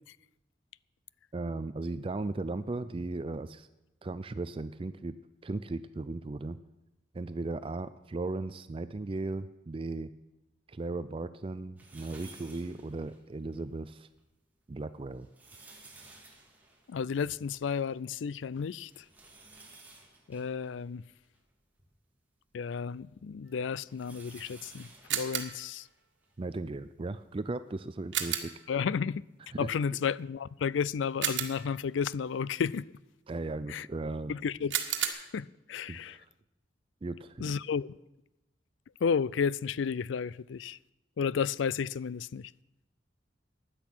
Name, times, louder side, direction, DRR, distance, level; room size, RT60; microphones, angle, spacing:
voice 1, 1.3-3.7 4.0-5.1 5.4-6.6 7.1-10.1 10.7-14.1 14.7-15.3 26.4-28.5 29.5-29.7 33.3-34.3 35.9-36.3 37.0-37.5, right 2 dB, 30° right, 0.4 m, -36 dB
sound 1, 11.8-13.6 14.1-14.2 15.0-18.0 18.2-18.3 18.9-21.9 22.5-26.4 27.1-27.2 28.5-28.6, right 2 dB, 10° right, 2.4 m, -55 dB
voice 2, 16.9-19.0 20.3-21.0 22.5-25.9 28.7-29.2 29.6-32.9 33.7-33.9 34.3-34.8 35.0-36.2 37.4-37.9 39.0-40.8 41.2-42.5, left 6 dB, 85° left, 0.4 m, -32 dB
sound 2, 25.1-25.7 28.1-28.7 31.2-31.9 34.7-35.1, right 10 dB, 80° right, 1.6 m, -32 dB
16.0 x 10.5 x 6.1 m
head